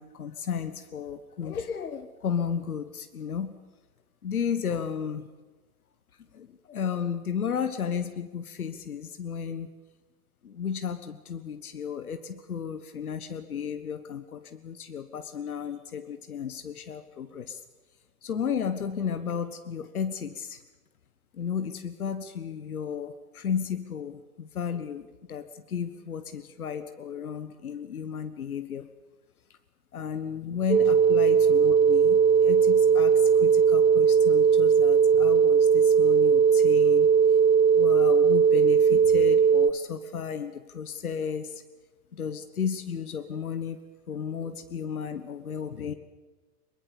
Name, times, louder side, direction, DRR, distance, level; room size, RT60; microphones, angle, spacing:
voice 1, 0.0-3.5 4.2-5.3 6.3-9.7 10.4-17.6 18.2-20.6 21.3-28.9 29.9-37.1 37.7-41.6 42.1-43.8 44.1-45.9, left 7 dB, 75° left, 10 dB, 1.4 m, -33 dB
sound 1, 30.7-39.7, right 6 dB, 10° right, 0.8 m, -19 dB
22.5 x 22.0 x 6.9 m, 1.2 s
figure-of-eight pair, 90°, 44 cm